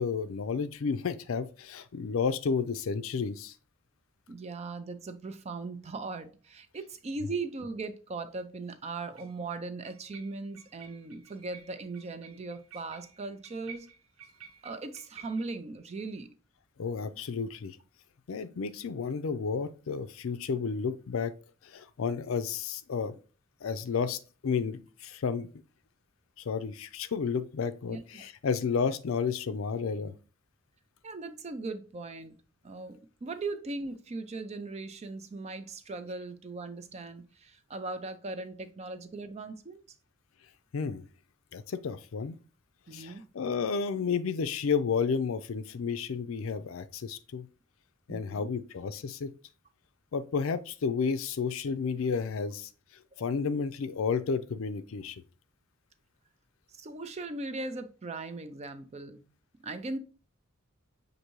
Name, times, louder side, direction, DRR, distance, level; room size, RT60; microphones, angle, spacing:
voice 1, 0.0-3.5 16.8-17.8 18.3-21.3 21.6-23.1 23.6-25.5 26.4-30.1 40.7-41.1 41.5-42.4 42.9-47.5 48.1-49.3 50.1-52.7 53.2-55.2, left 5 dB, 65° left, 0.4 m, -31 dB
voice 2, 4.3-13.9 14.6-16.3 27.9-28.3 31.0-32.4 32.6-39.8 42.9-43.2 48.1-48.5 53.2-53.3 56.7-59.3 59.6-60.0, right 3 dB, 30° right, 0.4 m, -39 dB
sound 1, 7.0-7.1 9.2-9.4 9.8-15.6, right 7 dB, 75° right, 0.8 m, -53 dB
6.5 x 2.7 x 3.0 m
head